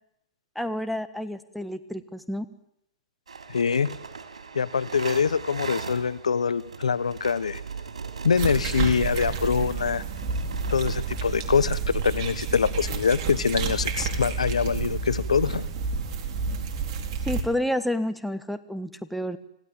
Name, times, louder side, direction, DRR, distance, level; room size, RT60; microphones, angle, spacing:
voice 1, 0.5-2.5 17.3-19.4, left 1 dB, ahead, 10 dB, 1.4 m, -29 dB
sound 1, 3.3-11.7, right 5 dB, 90° right, 3.4 m, -39 dB
voice 2, 3.5-3.9 4.5-7.6 8.2-10.0 10.7-15.7, left 6 dB, 90° left, 18 dB, 1.0 m, -24 dB
sound 2, 8.4-17.4, right 5 dB, 45° right, 4.4 m, -30 dB
26.0 x 16.5 x 8.9 m, 0.80 s
hypercardioid pair, 125°, 3 cm